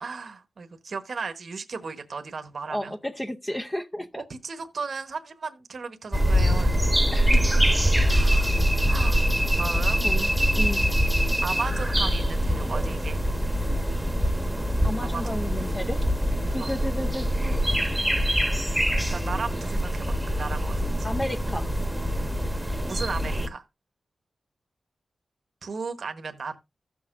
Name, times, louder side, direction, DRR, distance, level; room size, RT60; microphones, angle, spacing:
voice 1, 0.0-2.9 4.2-7.0 8.1-8.5 8.9-9.2 9.6-10.0 11.4-13.2 15.0-15.4 16.6-16.8 19.0-21.1 22.8-23.6 25.6-26.6, right 4 dB, 65° right, 1.1 m, -35 dB
voice 2, 2.7-4.2 7.1-8.2 10.0-10.8 14.8-16.0 16.5-17.6 21.0-21.7, left 1 dB, 15° left, 0.6 m, -33 dB
sound 1, 6.1-23.5, equal, 5° right, 1.1 m, -24 dB
15.5 x 6.3 x 2.5 m
wide cardioid pair, 100°, 0 cm